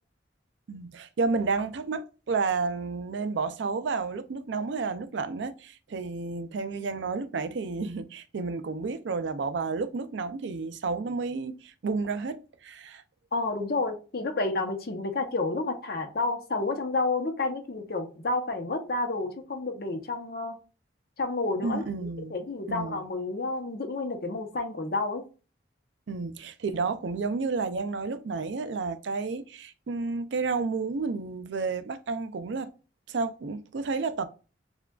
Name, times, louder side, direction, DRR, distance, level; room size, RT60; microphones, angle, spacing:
voice 1, 0.7-13.0 21.6-23.0 26.1-32.7 33.1-34.3, right 4 dB, 75° right, 0.4 m, -31 dB
voice 2, 13.3-20.6 21.2-21.8 22.3-25.2, left 3 dB, 55° left, 0.7 m, -30 dB
7.0 x 2.4 x 2.3 m
head